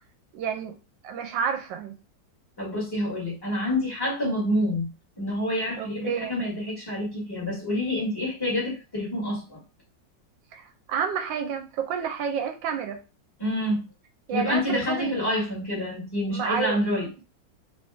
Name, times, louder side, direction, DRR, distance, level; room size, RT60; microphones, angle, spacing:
voice 1, 0.3-0.7 1.0-1.9 5.8-6.4 10.5-13.0 14.3-15.2 16.3-16.8, right 7 dB, 90° right, 5 dB, 1.4 m, -30 dB
voice 2, 2.6-4.9 5.2-9.6 13.4-13.9 14.3-17.1, left 1 dB, 15° left, -4 dB, 1.4 m, -27 dB
3.2 x 2.7 x 3.4 m, 0.31 s
omnidirectional pair, 2.0 m